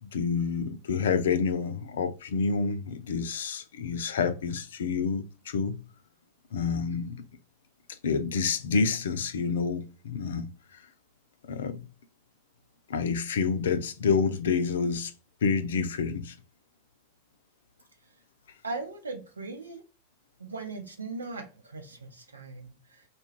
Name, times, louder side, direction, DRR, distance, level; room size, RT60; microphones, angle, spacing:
voice 1, 0.0-5.8 6.5-7.2 8.0-10.8 11.4-11.9 12.9-15.1 15.4-16.4, left 5 dB, 60° left, 0.3 m, -28 dB
voice 2, 18.6-19.8 20.4-23.1, right 3 dB, 75° right, 0.6 m, -39 dB
2.2 x 2.1 x 3.0 m
figure-of-eight pair, 90°, 0 cm